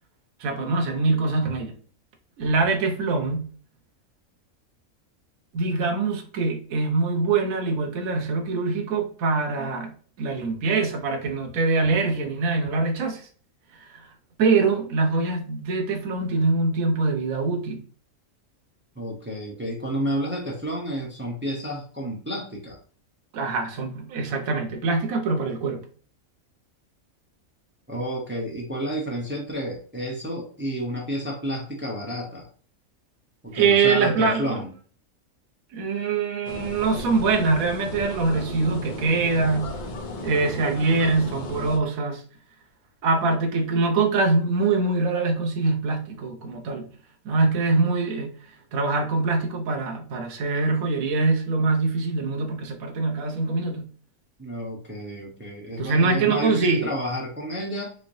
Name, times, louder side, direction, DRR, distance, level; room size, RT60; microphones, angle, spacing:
voice 1, 0.4-1.7 2.4-3.5 5.5-9.9 10.2-13.3 13.7-14.1 14.4-17.8 23.3-25.8 33.5-34.6 35.7-39.7 40.2-42.2 43.0-46.9 47.2-48.4 48.7-53.9 55.8-56.9, right 3 dB, 75° right, 1.2 m, -23 dB
voice 2, 19.0-22.8 27.9-32.5 33.4-34.7 54.4-57.9, equal, 10° right, 0.6 m, -30 dB
sound 1, 36.4-41.8, left 2 dB, 50° left, 0.6 m, -35 dB
3.8 x 3.2 x 2.6 m
omnidirectional pair, 1.5 m